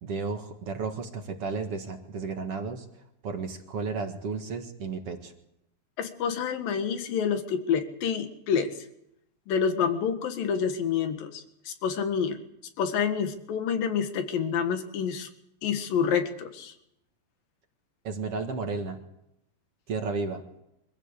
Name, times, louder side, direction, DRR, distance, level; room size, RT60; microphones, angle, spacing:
voice 1, 0.0-2.9 3.2-5.3 18.0-19.0 19.9-20.4, right 4 dB, 50° right, 5 dB, 2.2 m, -33 dB
voice 2, 6.0-8.7 9.5-12.4 12.8-15.3 15.6-16.7, left 7 dB, 70° left, 7 dB, 3.4 m, -28 dB
25.0 x 15.5 x 8.3 m, 0.82 s
omnidirectional pair, 4.2 m